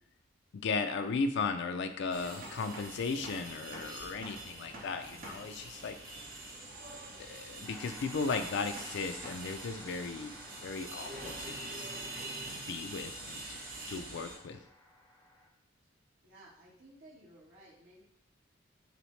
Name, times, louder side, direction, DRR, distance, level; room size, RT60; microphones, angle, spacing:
voice 1, 0.5-6.0 7.2-10.4 10.6-11.7 12.4-13.6 13.9-14.6, left 4 dB, 65° left, 8 dB, 0.4 m, -36 dB
sound 1, 2.1-14.4, right 2 dB, 45° right, 0.9 m, -44 dB
sound 2, 7.6-15.5, left 1 dB, 15° left, 0.9 m, -56 dB
voice 2, 16.2-18.0, right 1 dB, 80° right, -7 dB, 1.3 m, -56 dB
5.8 x 2.1 x 3.1 m, 0.75 s
head